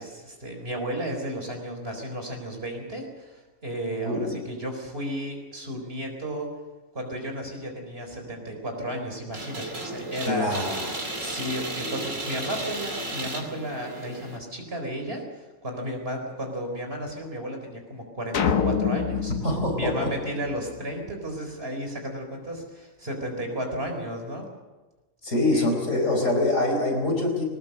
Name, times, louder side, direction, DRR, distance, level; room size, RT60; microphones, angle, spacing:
voice 1, 0.0-6.5 6.9-10.5 11.2-19.3 19.7-24.5 25.5-25.7, right 1 dB, 45° right, 3 dB, 4.4 m, -33 dB
voice 2, 4.0-4.4 10.3-10.9 19.3-20.1 25.2-27.4, left 2 dB, 65° left, 1 dB, 4.8 m, -25 dB
sound 1, 9.3-14.4, right 2 dB, 70° right, 3.3 m, -34 dB
sound 2, 18.3-20.8, left 7 dB, 85° left, 1.5 m, -27 dB
21.0 x 19.5 x 6.7 m, 1.2 s
omnidirectional pair, 1.4 m